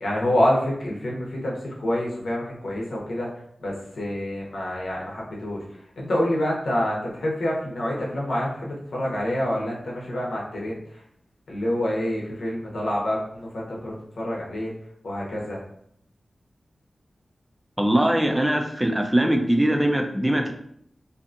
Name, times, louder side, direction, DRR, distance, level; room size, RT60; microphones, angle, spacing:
voice 1, 0.0-3.3 3.6-5.6 6.0-10.8 11.5-14.7 15.0-15.6, left 1 dB, 80° left, -4 dB, 0.7 m, -27 dB
voice 2, 17.8-20.5, right 1 dB, 10° right, 3 dB, 0.4 m, -21 dB
2.6 x 2.4 x 2.5 m, 0.70 s
wide cardioid pair, 80°, 0 cm